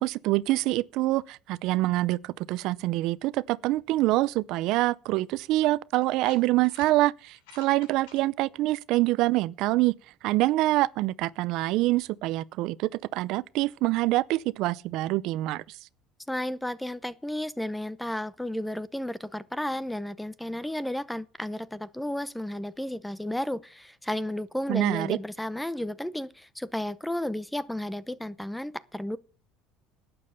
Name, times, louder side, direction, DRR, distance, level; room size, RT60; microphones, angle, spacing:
voice 1, 0.0-9.9 10.2-15.8 24.7-25.2, right 18 dB, 60° right, 0.5 m, -26 dB
sound 1, 5.2-5.3 6.0-6.9 7.3-8.2, left 6 dB, 90° left, 6.3 m, -51 dB
voice 2, 16.3-29.2, left 1 dB, 5° left, 0.7 m, -33 dB
12.0 x 8.7 x 6.9 m
cardioid pair, 140°, 0 cm